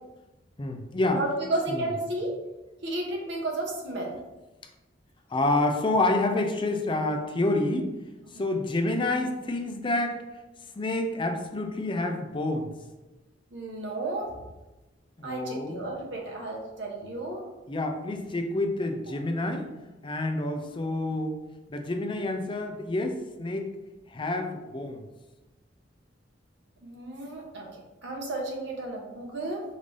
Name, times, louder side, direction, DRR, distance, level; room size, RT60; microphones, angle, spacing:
voice 1, 0.6-1.2 1.7-1.9 5.3-7.9 8.4-10.2 10.8-12.7 15.2-15.9 17.7-19.7 20.0-21.4 21.7-23.7 24.1-25.0, left 2 dB, 25° left, 4 dB, 0.5 m, -28 dB
voice 2, 1.1-2.4 2.8-4.1 13.5-14.3 15.2-17.4 26.8-27.6 28.0-29.6, right 2 dB, 70° right, -1 dB, 1.0 m, -32 dB
5.2 x 2.7 x 3.3 m, 1.1 s
head